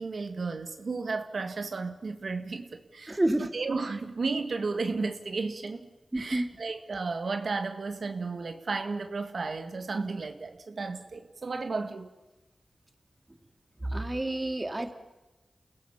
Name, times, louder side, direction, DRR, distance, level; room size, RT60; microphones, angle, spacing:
voice 1, 0.0-5.9 6.1-12.1, right 4 dB, 75° right, 7 dB, 1.9 m, -33 dB
voice 2, 3.1-3.5 6.1-6.5 13.8-14.9, right 1 dB, 25° right, 7 dB, 2.3 m, -29 dB
29.5 x 17.0 x 7.3 m, 1.1 s
wide cardioid pair, 70°, 0 cm